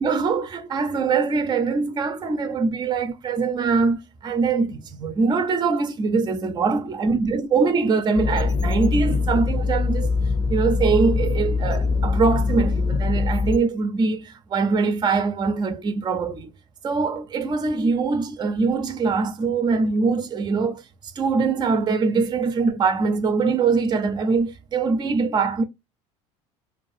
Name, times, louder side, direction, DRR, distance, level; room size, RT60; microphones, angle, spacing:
voice 1, 0.0-10.1 10.5-16.5 16.8-20.8 21.2-25.6, right 4 dB, 25° right, 0.5 m, -23 dB
sound 1, 8.2-13.6, left 4 dB, 25° left, 0.6 m, -23 dB
2.3 x 2.3 x 2.5 m
supercardioid pair, 85°, 16 cm